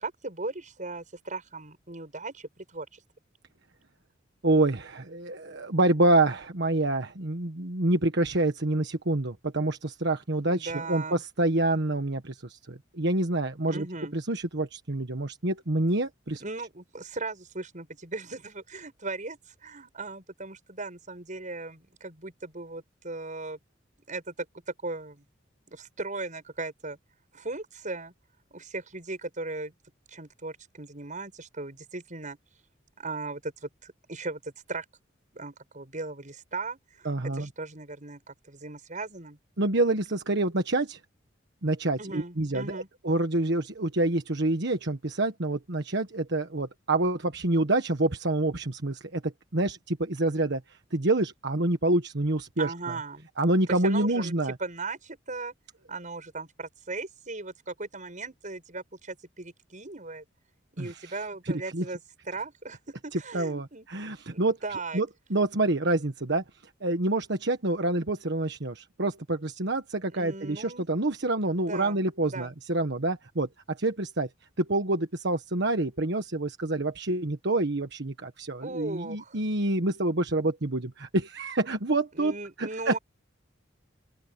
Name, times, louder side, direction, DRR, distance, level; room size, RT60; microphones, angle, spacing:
voice 1, 0.0-3.0 10.5-11.2 13.6-14.2 16.4-23.6 24.1-25.2 25.7-27.0 27.3-28.1 28.5-29.7 30.1-32.4 33.0-34.9 35.3-39.4 42.0-42.9 52.6-53.3 53.7-54.3 54.6-55.5 55.9-60.2 60.7-63.9 64.3-65.0 70.1-70.9 71.6-72.5 78.6-79.4 82.1-83.0, right 3 dB, 40° right, 7.5 m, -38 dB
voice 2, 4.4-13.9 14.1-16.4 37.0-37.5 39.6-41.0 41.6-50.6 50.9-52.7 53.4-54.5 60.8-61.1 61.5-61.8 63.3-64.6 64.9-66.4 66.8-74.3 74.6-83.0, right 2 dB, 65° right, 1.4 m, -27 dB
open air
head